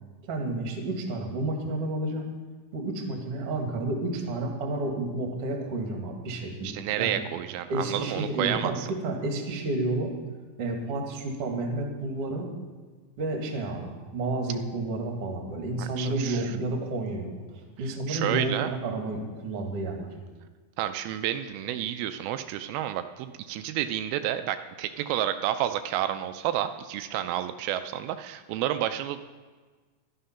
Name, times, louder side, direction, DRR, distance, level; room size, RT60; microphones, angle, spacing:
voice 1, 0.3-2.3 2.7-7.2 7.7-10.1 10.6-12.5 13.2-20.1, right 2 dB, 50° right, 2 dB, 2.2 m, -31 dB
voice 2, 6.6-8.9 15.8-16.4 18.1-18.7 20.8-29.2, right 11 dB, 85° right, 10 dB, 2.4 m, -30 dB
11.5 x 11.5 x 5.7 m, 1.4 s
omnidirectional pair, 4.3 m